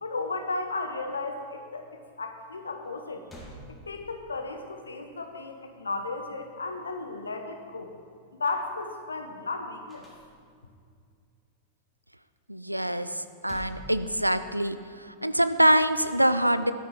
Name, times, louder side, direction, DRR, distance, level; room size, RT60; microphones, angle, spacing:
voice 1, 0.0-3.2 3.7-7.9 8.4-10.1, left 3 dB, 75° left, 6 dB, 1.0 m, -34 dB
sound 1, 2.8-2.9 3.3-4.4 9.9-10.8 13.1-14.7, equal, 10° left, 2.4 m, -47 dB
voice 2, 12.5-16.7, right 1 dB, 90° right, 12 dB, 0.4 m, -25 dB
10.0 x 9.3 x 4.7 m, 2.1 s
figure-of-eight pair, 90°, 0 cm